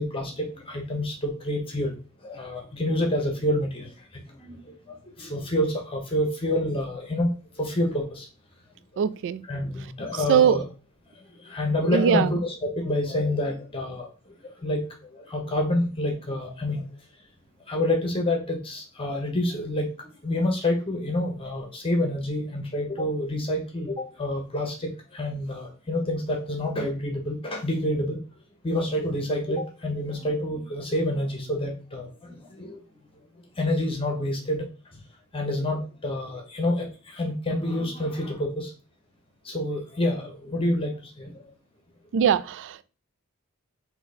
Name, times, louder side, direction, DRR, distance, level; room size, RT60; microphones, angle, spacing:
voice 1, 0.0-1.9 2.2-3.9 4.4-7.3 7.6-8.3 9.5-10.6 11.4-14.1 14.4-16.8 17.7-19.9 20.2-28.2 28.6-32.8 33.6-34.6 35.3-38.7 39.4-41.3, left 1 dB, 25° left, 1.1 m, -28 dB
voice 2, 9.0-9.4 10.3-10.6 11.9-12.3 42.1-42.8, right 8 dB, 55° right, 0.3 m, -21 dB
3.9 x 2.9 x 4.2 m
head